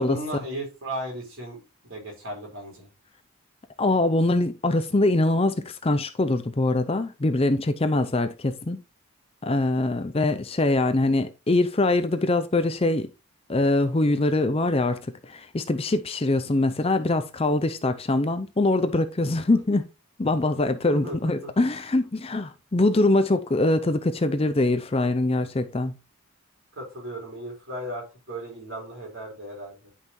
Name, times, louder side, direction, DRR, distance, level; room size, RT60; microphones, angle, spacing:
voice 1, 0.0-2.9 19.5-19.6 20.9-21.5 26.8-29.9, right 1 dB, 55° right, 4.5 m, -36 dB
voice 2, 3.8-8.8 9.4-13.1 13.5-19.8 20.2-25.9, left 2 dB, 25° left, 0.5 m, -23 dB
10.5 x 5.5 x 3.1 m
head